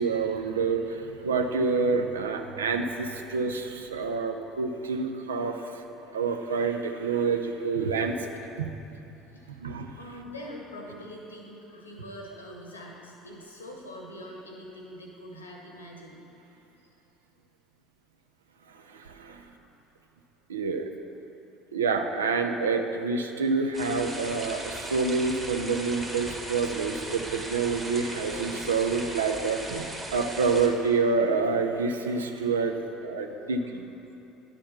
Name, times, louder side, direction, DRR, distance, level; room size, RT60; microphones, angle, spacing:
voice 1, 0.0-8.7 9.6-9.9 18.7-19.4 20.5-20.9 21.7-33.9, right 4 dB, 80° right, 5 dB, 0.5 m, -28 dB
voice 2, 9.3-9.6 10.0-16.3 19.1-19.7 25.3-25.4 29.0-29.5 33.3-33.7, equal, 85° left, 0 dB, 1.1 m, -44 dB
sound 1, 23.7-30.7, right 2 dB, 20° right, 1.4 m, -38 dB
10.0 x 4.3 x 5.8 m, 2.9 s
figure-of-eight pair, 60°, 0 cm